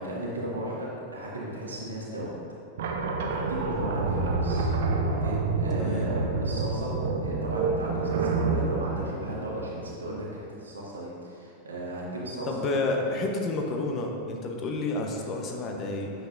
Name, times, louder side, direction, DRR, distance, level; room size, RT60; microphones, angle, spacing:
voice 1, 0.0-2.3 3.0-4.7 5.0-6.9 7.2-12.7, right 1 dB, 75° right, -4 dB, 1.7 m, -35 dB
sound 1, 2.8-10.2, right 3 dB, 55° right, 0.7 m, -28 dB
voice 2, 5.8-6.1 12.5-16.1, left 2 dB, 30° left, 1 dB, 1.0 m, -30 dB
9.1 x 6.8 x 2.6 m, 2.4 s
figure-of-eight pair, 90°, 0 cm